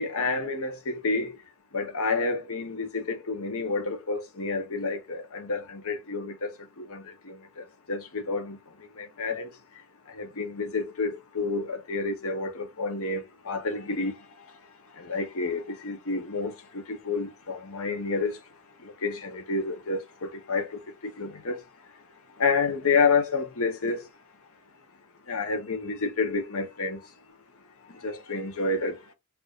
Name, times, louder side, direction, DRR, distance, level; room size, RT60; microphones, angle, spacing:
voice 1, 0.0-1.3 1.7-9.5 10.1-14.2 15.0-18.4 18.8-21.6 22.4-24.1 25.3-27.0 27.9-29.0, left 4 dB, 65° left, 1.0 m, -29 dB
4.7 x 2.6 x 2.5 m
head